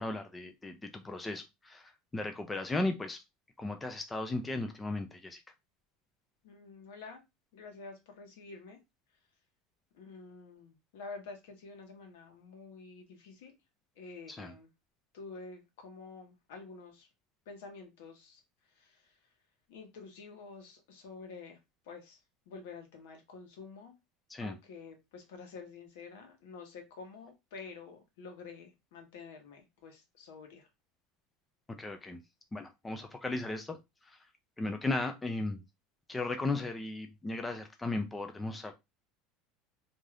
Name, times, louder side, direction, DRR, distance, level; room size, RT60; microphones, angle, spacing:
voice 1, 0.0-3.2 3.6-5.4 14.3-14.5 24.3-24.6 31.8-32.2 32.5-33.8 34.0-34.2 34.6-35.6 36.1-38.7, left 2 dB, 10° left, 6 dB, 0.3 m, -36 dB
voice 2, 6.4-7.2 7.5-8.8 9.9-13.5 14.0-14.7 15.1-17.1 17.5-18.4 18.7-19.2 19.7-21.6 21.8-22.2 22.5-23.9 24.4-30.7, left 4 dB, 85° left, 4 dB, 1.0 m, -49 dB
2.6 x 2.3 x 3.2 m, 0.22 s
cardioid pair, 160°, 0 cm